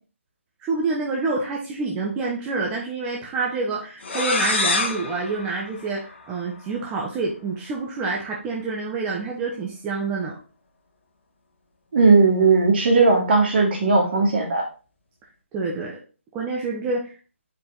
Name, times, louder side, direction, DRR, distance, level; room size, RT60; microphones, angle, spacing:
voice 1, 0.6-10.4 15.5-16.0 16.3-17.1, right 3 dB, 15° right, -2 dB, 1.0 m, -27 dB
sound 1, 4.0-6.6, left 3 dB, 55° left, 1.3 m, -27 dB
voice 2, 11.9-14.6, right 3 dB, 50° right, 0 dB, 2.3 m, -17 dB
5.2 x 4.6 x 4.0 m, 0.36 s
figure-of-eight pair, 145°, 7 cm